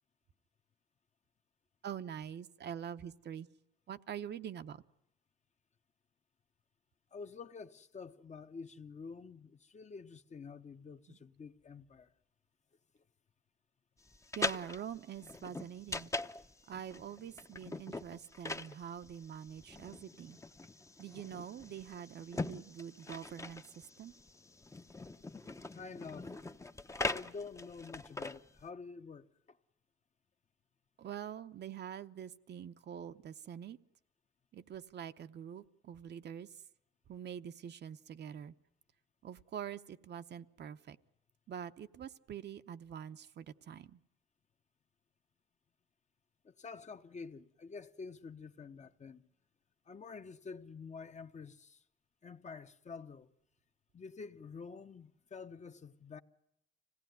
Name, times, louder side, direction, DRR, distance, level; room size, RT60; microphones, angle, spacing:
voice 1, 1.8-3.5 3.9-4.8 11.1-11.2 14.3-16.1 16.7-20.4 21.0-24.1 31.0-33.8 34.5-36.5 37.1-38.5 39.2-41.0 41.5-44.0, right 9 dB, 60° right, 0.9 m, -45 dB
voice 2, 7.1-12.1 25.7-26.3 27.0-29.6 46.4-49.2 49.9-51.8 52.2-53.3 53.9-56.2, left 5 dB, 35° left, 1.0 m, -48 dB
sound 1, 14.1-28.7, left 2 dB, 15° left, 0.8 m, -42 dB
25.5 x 17.0 x 9.4 m
cardioid pair, 90°, 20 cm